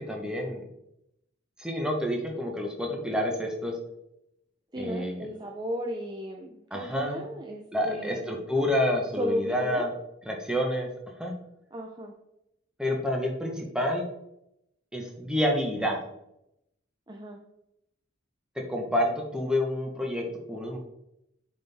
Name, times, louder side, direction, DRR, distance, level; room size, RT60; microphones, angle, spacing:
voice 1, 0.1-0.6 1.6-3.7 4.8-5.3 6.7-7.2 7.7-9.9 10.2-10.9 11.2-11.3 12.8-14.0 14.9-16.0 18.7-20.8, left 1 dB, 5° right, 0 dB, 1.0 m, -28 dB
voice 2, 4.7-8.2 9.2-9.9 11.7-12.1 17.1-17.4, equal, 20° right, 2 dB, 0.5 m, -34 dB
7.6 x 4.3 x 3.4 m, 0.81 s
head